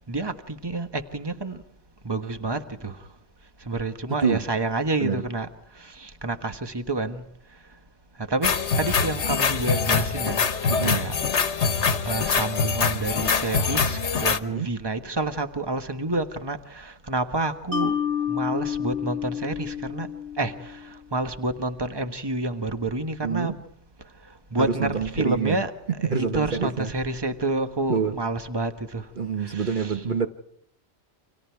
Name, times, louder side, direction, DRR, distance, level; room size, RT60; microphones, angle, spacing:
voice 1, 0.0-1.6 2.0-3.1 3.6-5.5 5.8-7.8 8.1-10.5 10.8-11.2 12.0-23.7 24.1-30.1, right 2 dB, 20° right, 1.4 m, -29 dB
sound 1, 8.4-14.4, left 5 dB, 85° left, 1.5 m, -24 dB
voice 2, 10.7-11.0 14.5-14.7 23.2-23.6 24.6-25.6 26.0-26.9 27.9-28.2 29.2-30.3, right 5 dB, 45° right, 1.2 m, -26 dB
Mallet percussion, 17.7-21.0, left 8 dB, 80° right, 5.0 m, -29 dB
30.0 x 26.0 x 4.7 m
omnidirectional pair, 1.1 m